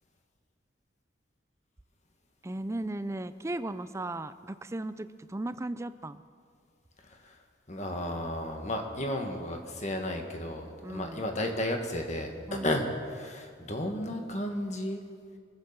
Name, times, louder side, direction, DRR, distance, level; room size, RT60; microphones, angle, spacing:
voice 1, 2.4-6.2 10.8-11.3 12.5-12.7, right 1 dB, 15° right, 13 dB, 0.4 m, -36 dB
voice 2, 7.0-7.4 7.7-12.9 13.1-15.0, left 1 dB, 40° left, 3 dB, 1.6 m, -33 dB
23.5 x 8.3 x 6.8 m, 2.1 s
head